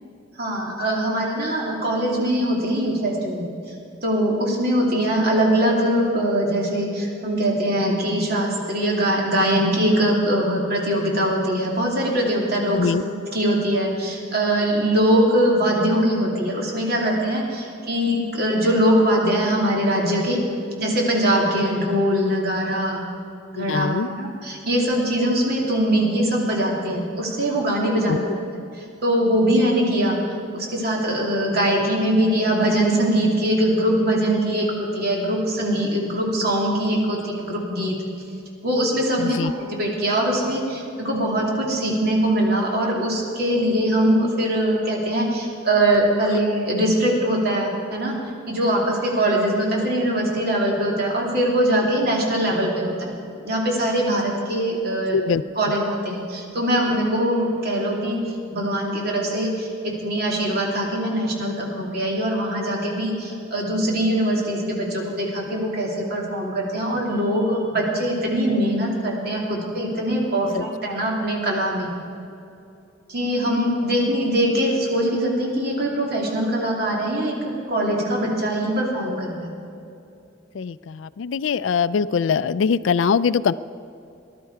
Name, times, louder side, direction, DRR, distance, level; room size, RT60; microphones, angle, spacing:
voice 1, 0.4-3.5 4.0-20.4 20.8-23.0 23.5-28.2 28.5-28.6 29.0-30.2 30.5-38.0 38.6-48.2 48.5-53.1 53.4-55.2 55.6-58.2 58.5-71.9 73.1-79.5, right 1 dB, 55° right, -2 dB, 2.8 m, -22 dB
voice 2, 23.6-24.1 28.1-28.2 39.2-39.5 55.1-55.4 70.5-70.6 80.5-83.5, left 6 dB, 80° left, 17 dB, 0.4 m, -22 dB
19.5 x 12.0 x 4.8 m, 2.7 s
head